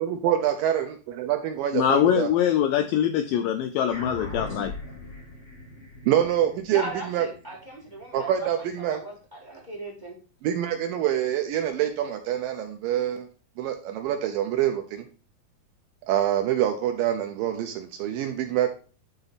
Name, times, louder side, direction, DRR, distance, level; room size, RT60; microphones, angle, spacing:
voice 1, 0.0-2.3 6.1-7.3 8.1-9.0 10.4-13.3 13.6-15.0 16.1-18.7, right 11 dB, 80° right, 6 dB, 2.1 m, -26 dB
voice 2, 1.7-4.7, left 9 dB, 85° left, 7 dB, 1.9 m, -23 dB
sound 1, 3.9-8.6, left 2 dB, 50° left, 4.1 m, -40 dB
voice 3, 6.7-10.2, right 1 dB, 25° right, 0 dB, 1.1 m, -38 dB
9.9 x 3.9 x 3.9 m, 0.37 s
omnidirectional pair, 4.4 m